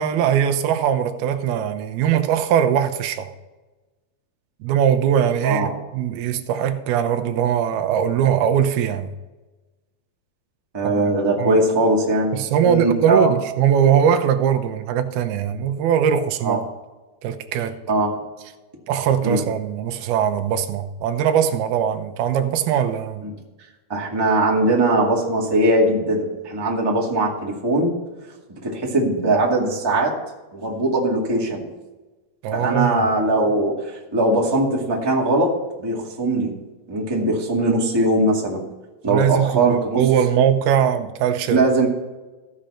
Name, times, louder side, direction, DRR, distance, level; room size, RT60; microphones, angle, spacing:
voice 1, 0.0-3.3 4.6-9.1 10.8-11.1 11.4-11.6 12.3-16.7 17.2-17.8 18.9-23.2 32.4-33.0 39.1-41.6, right 9 dB, 90° right, 2.8 m, -21 dB
voice 2, 10.7-13.3 16.4-16.6 17.9-18.2 19.2-19.5 23.2-23.3 23.9-27.9 28.6-30.2 30.5-31.7 32.5-36.5 36.9-38.6 39.0-40.0 41.5-41.9, right 2 dB, 10° right, 1.2 m, -20 dB
15.5 x 6.5 x 4.3 m
omnidirectional pair, 4.3 m